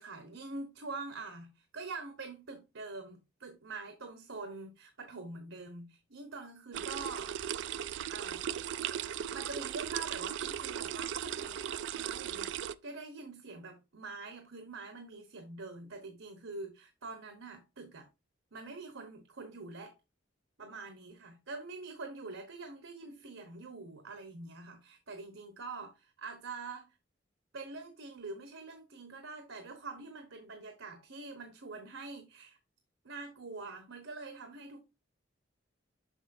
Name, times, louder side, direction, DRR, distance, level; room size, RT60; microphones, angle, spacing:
voice 1, 0.0-7.3 8.1-8.4 9.3-18.1 18.5-20.0 20.6-26.9 27.5-32.6 33.0-34.8, right 3 dB, 85° right, 1.0 m, -45 dB
sound 1, 6.7-12.8, right 9 dB, 65° right, 0.3 m, -37 dB
6.4 x 5.9 x 2.6 m
head